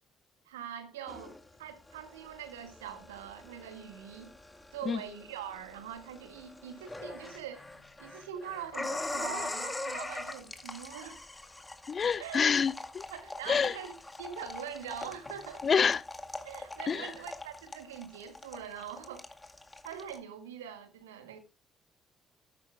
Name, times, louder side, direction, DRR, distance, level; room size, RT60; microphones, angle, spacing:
voice 1, 0.4-4.3 4.7-7.7 8.0-11.2 12.2-12.4 13.1-13.9 14.2-15.6 16.4-19.2 19.8-21.4, right 8 dB, 75° right, 1.7 m, -43 dB
sound 1, 1.1-20.2, left 2 dB, 20° left, 2.1 m, -43 dB
voice 2, 11.9-13.0 13.5-13.7 15.6-16.0 16.9-17.1, left 6 dB, 40° left, 0.6 m, -27 dB
13.5 x 11.0 x 2.2 m
figure-of-eight pair, 45°, 0 cm